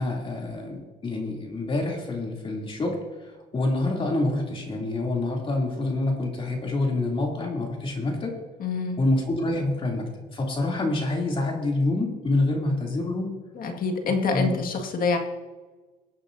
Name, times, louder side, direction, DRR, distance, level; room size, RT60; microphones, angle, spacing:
voice 1, 0.0-8.4 9.0-13.3 14.0-14.6, left 2 dB, 30° left, -1 dB, 2.9 m, -27 dB
voice 2, 8.6-9.0 13.6-15.2, left 4 dB, 55° left, 3 dB, 2.0 m, -26 dB
21.0 x 8.8 x 2.7 m, 1.3 s
cardioid pair, 110°, 17 cm